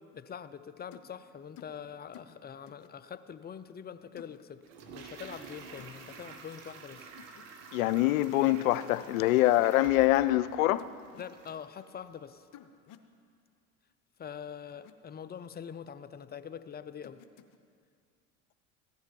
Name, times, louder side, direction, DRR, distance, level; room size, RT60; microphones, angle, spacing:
voice 1, 0.0-7.1 11.2-12.5 14.2-17.2, left 8 dB, 25° left, 0.5 m, -44 dB
sound 1, 0.9-1.1 1.6-1.8 2.1-2.4 2.7-2.9 4.2-4.4 5.8-6.0 7.2-7.4 7.7-8.1 9.3-9.7 10.8-11.3 12.5-13.1 14.7-14.9 17.0-17.6, left 11 dB, 50° left, 0.9 m, -53 dB
Toilet flush, 4.6-11.7 12.0-12.1, right 5 dB, 75° right, 1.5 m, -50 dB
voice 2, 7.7-10.9, left 15 dB, 80° left, 0.6 m, -25 dB
15.5 x 10.5 x 5.3 m
hypercardioid pair, 75°, 41 cm